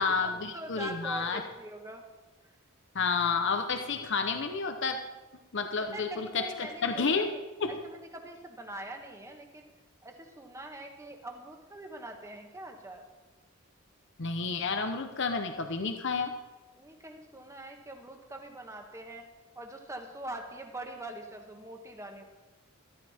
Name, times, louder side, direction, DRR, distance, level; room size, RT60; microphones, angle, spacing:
voice 1, 0.0-1.4 2.9-5.0 5.5-7.3 7.6-7.8 14.2-16.3, left 4 dB, 60° left, 6 dB, 0.8 m, -30 dB
voice 2, 0.5-2.0 5.9-7.4 7.7-9.7 10.0-13.1 16.7-19.2 19.5-22.2, right 1 dB, 15° right, 3 dB, 1.4 m, -43 dB
13.5 x 13.0 x 4.3 m, 1.2 s
head